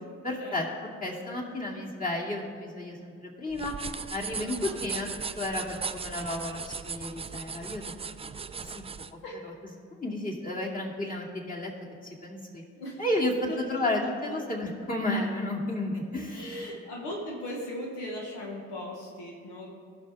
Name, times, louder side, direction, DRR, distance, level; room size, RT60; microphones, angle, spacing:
voice 1, 0.2-0.7 1.0-3.7 4.1-5.1 5.4-7.9 8.6-8.8 10.0-11.7 12.0-12.6 13.0-16.4, left 1 dB, 25° left, -3 dB, 2.5 m, -32 dB
sound 1, 3.5-9.1, right 5 dB, 20° right, 0.4 m, -37 dB
voice 2, 4.4-4.9 9.2-9.5 12.8-13.0 13.5-13.6 16.3-19.7, left 1 dB, 90° left, -2 dB, 1.3 m, -38 dB
15.5 x 6.2 x 3.4 m, 2.2 s
hypercardioid pair, 45°, 30 cm